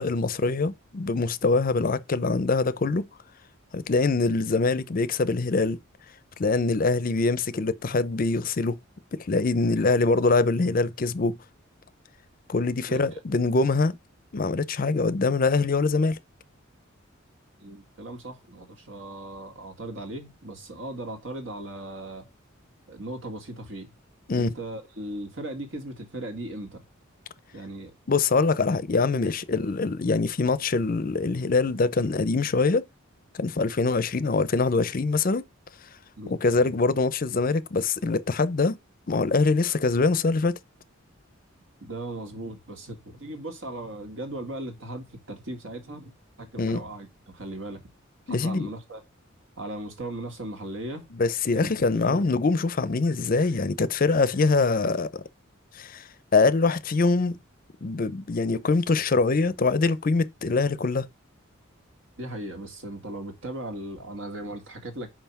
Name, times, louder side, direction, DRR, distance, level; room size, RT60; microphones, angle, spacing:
voice 1, 0.0-3.1 3.7-5.8 6.4-8.8 9.1-11.4 12.5-14.0 14.3-16.2 24.3-24.5 28.1-32.8 33.3-35.4 36.3-38.8 39.1-40.6 46.6-46.8 48.3-48.7 51.1-55.2 55.7-57.4 57.8-61.1, left 3 dB, 45° left, 0.5 m, -24 dB
voice 2, 12.9-13.2 17.6-22.3 22.9-23.9 24.3-26.8 27.5-27.9 36.2-36.4 41.8-46.1 46.4-47.1 47.3-47.8 48.3-49.0 49.6-51.1 51.5-52.2 62.2-65.1, right 1 dB, 70° right, 2.0 m, -37 dB
5.6 x 4.8 x 5.9 m
head